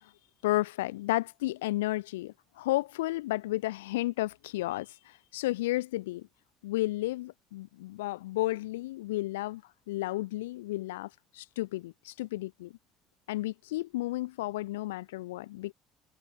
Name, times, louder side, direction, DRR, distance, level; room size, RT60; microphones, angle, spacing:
voice 1, 0.4-6.3 6.6-9.6 9.9-12.7 13.3-15.7, left 17 dB, 70° left, 3.1 m, -32 dB
figure-of-eight pair, 55°, 0 cm